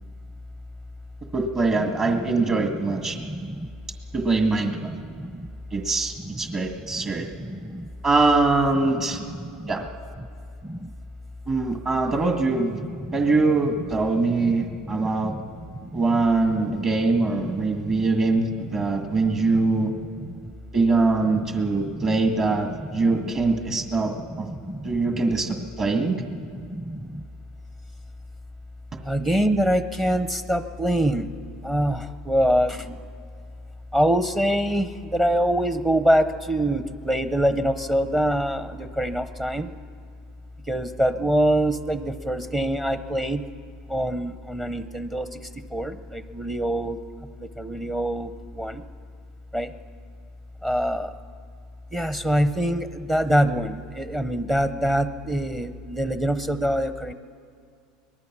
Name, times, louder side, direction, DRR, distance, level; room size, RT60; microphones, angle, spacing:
voice 1, 1.3-3.2 4.1-4.9 5.7-7.3 8.0-9.2 9.7-9.8 11.5-12.8 13.1-15.3 15.9-19.9 20.7-24.5 24.8-26.2, right 3 dB, 35° right, 3 dB, 1.8 m, -23 dB
voice 2, 3.1-3.7 4.9-5.5 6.5-6.6 7.0-7.9 9.6-9.7 10.6-10.9 12.9-13.1 15.0-15.4 15.8-16.0 16.7-16.8 17.7-18.0 19.2-19.3 20.2-20.3 21.6-21.7 22.0-22.1 23.1-23.2 24.5-24.9 26.7-27.2 29.1-31.3 31.6-33.0 33.9-39.7 40.7-43.4 43.9-45.4 45.7-47.0 47.4-48.3 48.5-48.8 49.5-49.7 50.6-51.1 51.9-57.1, right 1 dB, 10° right, 10 dB, 0.8 m, -25 dB
23.0 x 19.5 x 6.1 m, 2.3 s
supercardioid pair, 120°, 3 cm